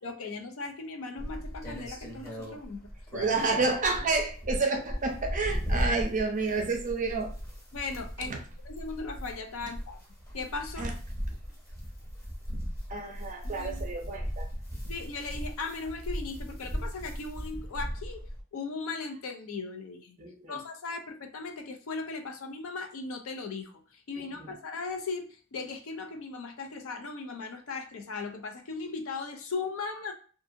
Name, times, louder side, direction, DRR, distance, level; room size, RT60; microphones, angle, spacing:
voice 1, 0.0-2.8 7.7-10.0 10.3-10.9 13.4-13.8 14.9-18.2 18.5-20.2 20.5-30.1, left 4 dB, 70° left, 5 dB, 0.5 m, -38 dB
sound 1, 1.2-18.4, equal, 15° left, 0.9 m, -37 dB
voice 2, 3.1-7.3 8.3-8.4 10.8-10.9 12.9-14.5 20.2-20.6 24.2-24.4, right 3 dB, 35° right, 3 dB, 0.5 m, -30 dB
2.6 x 2.6 x 2.5 m, 0.41 s
head